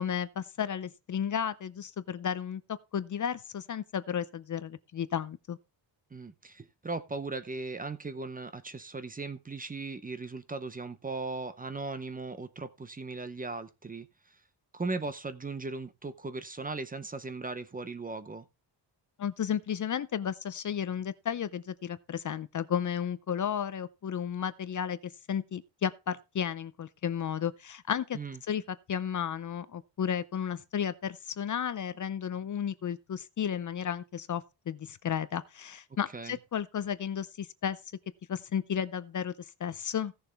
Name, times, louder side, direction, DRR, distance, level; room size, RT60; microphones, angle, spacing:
voice 1, 0.0-5.6 19.2-28.2 28.5-37.8 38.3-40.1, left 8 dB, 45° left, 0.6 m, -33 dB
voice 2, 6.1-14.4 14.7-18.5 28.1-28.4 36.1-36.4, right 3 dB, 20° right, 0.7 m, -38 dB
16.5 x 6.9 x 3.4 m
wide cardioid pair, 170°, 44 cm